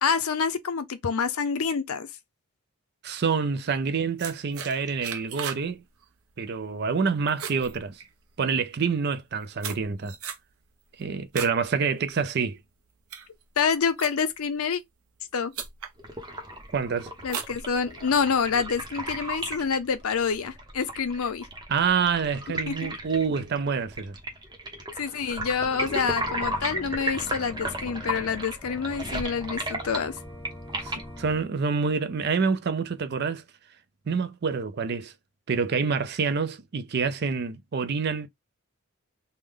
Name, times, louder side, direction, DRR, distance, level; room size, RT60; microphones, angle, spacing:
voice 1, 0.0-2.1 13.6-14.8 15.3-15.5 17.2-21.5 22.7-22.9 25.0-30.2, left 6 dB, 85° left, 0.6 m, -27 dB
voice 2, 3.0-5.8 6.4-8.0 8.4-10.2 11.0-12.6 16.7-17.1 21.7-24.1 30.8-33.4 34.1-35.1 35.5-38.3, right 5 dB, 50° right, 0.4 m, -27 dB
sound 1, 4.2-5.7 6.0-6.3 6.7-7.0 7.3-8.5 9.1-11.6 12.0-12.3 12.8-14.5 15.2-15.3 15.5-16.0 16.4-16.8 17.2-18.2, right 8 dB, 90° right, 0.7 m, -38 dB
sound 2, 16.0-31.3, right 1 dB, 20° right, 0.7 m, -35 dB
Organ, 25.6-31.4, left 1 dB, 15° left, 0.5 m, -43 dB
3.2 x 2.1 x 3.6 m
head